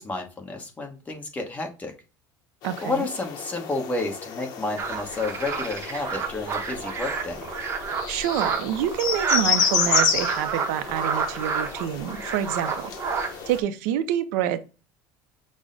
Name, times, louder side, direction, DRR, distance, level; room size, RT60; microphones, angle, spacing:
voice 1, 0.0-1.9 2.8-7.4, left 3 dB, 15° left, 3 dB, 0.9 m, -31 dB
sound 1, 2.6-13.6, left 7 dB, 50° left, 0.8 m, -31 dB
voice 2, 2.6-3.1 8.1-14.6, right 10 dB, 80° right, 12 dB, 0.4 m, -27 dB
sound 2, 4.8-13.6, right 6 dB, 30° right, 0.7 m, -29 dB
6.1 x 2.0 x 3.8 m, 0.32 s
cardioid pair, 140°, 9 cm